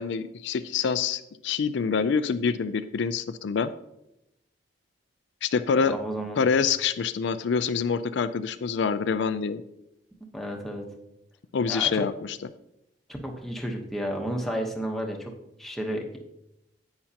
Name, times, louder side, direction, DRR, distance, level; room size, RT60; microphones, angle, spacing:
voice 1, 0.0-3.7 5.4-6.0 6.4-9.6 11.5-12.4, left 6 dB, 65° left, 11 dB, 0.4 m, -26 dB
voice 2, 5.8-6.4 10.3-10.9 11.7-12.0 13.2-15.3 15.6-16.2, equal, ahead, 0 dB, 1.0 m, -32 dB
10.0 x 8.6 x 2.8 m, 0.86 s
head